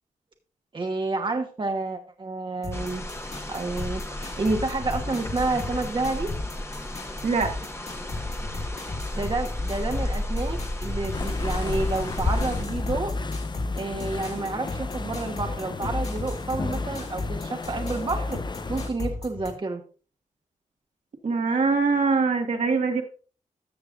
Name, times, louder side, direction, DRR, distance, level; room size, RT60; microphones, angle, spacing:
voice 1, 0.7-3.1 3.5-6.3 9.1-13.1 13.7-18.4 18.7-19.8, right 3 dB, 40° right, 1.2 m, -29 dB
sound 1, 2.6-19.5, left 2 dB, 60° left, 3.4 m, -33 dB
sound 2, 2.7-12.6, left 1 dB, 20° left, 1.2 m, -34 dB
sound 3, 11.1-18.9, left 4 dB, 35° left, 0.6 m, -34 dB
voice 2, 21.2-23.0, right 4 dB, 65° right, 1.5 m, -23 dB
13.5 x 6.8 x 2.5 m
cardioid pair, 60°, 13 cm